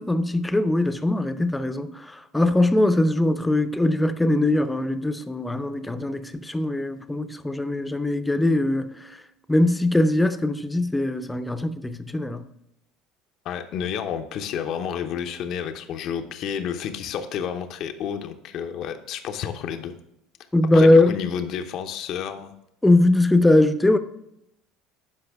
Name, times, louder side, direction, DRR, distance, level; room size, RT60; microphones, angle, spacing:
voice 1, 0.0-1.9 2.3-9.0 9.5-12.4 20.5-21.2 22.8-24.0, left 1 dB, 10° left, 0.7 m, -21 dB
voice 2, 13.4-19.9 20.7-22.5, left 8 dB, 60° left, 0.8 m, -30 dB
12.0 x 4.9 x 3.5 m
hypercardioid pair, 75°, 0 cm